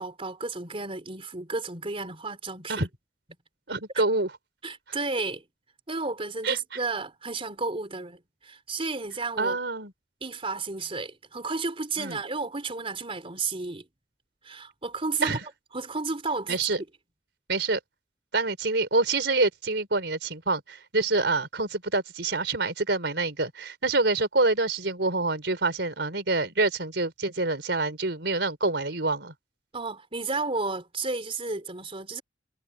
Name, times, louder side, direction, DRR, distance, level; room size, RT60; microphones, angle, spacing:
voice 1, 0.0-2.9 3.9-4.0 4.6-5.4 5.9-9.6 10.2-13.8 14.4-15.4 15.7-16.6 29.7-32.2, right 3 dB, 35° right, 4.0 m, -32 dB
voice 2, 3.7-4.3 6.4-6.6 9.4-9.9 12.0-12.2 15.2-15.4 16.5-16.8 17.5-17.8 18.3-29.3, right 3 dB, 70° right, 5.0 m, -26 dB
head